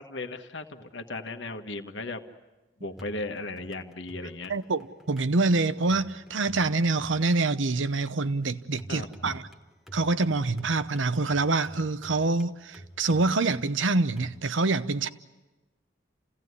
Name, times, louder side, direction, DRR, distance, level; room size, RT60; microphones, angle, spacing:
voice 1, 0.0-2.2 2.8-4.5 8.9-9.3, left 2 dB, 75° left, 1.4 m, -36 dB
sound 1, 2.9-14.4, right 1 dB, ahead, 1.5 m, -50 dB
voice 2, 4.5-9.4 9.9-15.1, right 3 dB, 90° right, 0.9 m, -26 dB
28.5 x 17.0 x 9.7 m
head